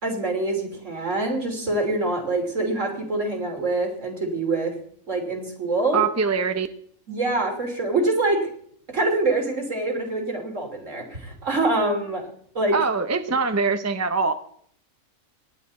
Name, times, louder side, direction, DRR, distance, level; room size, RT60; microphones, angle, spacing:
voice 1, 0.0-4.7 5.1-6.0 7.1-8.5 8.9-12.3 12.5-12.8, right 2 dB, 65° right, 2 dB, 3.4 m, -25 dB
voice 2, 5.9-6.7 12.7-14.3, right 5 dB, 15° right, 9 dB, 0.6 m, -23 dB
18.5 x 11.0 x 4.2 m, 0.62 s
omnidirectional pair, 1.4 m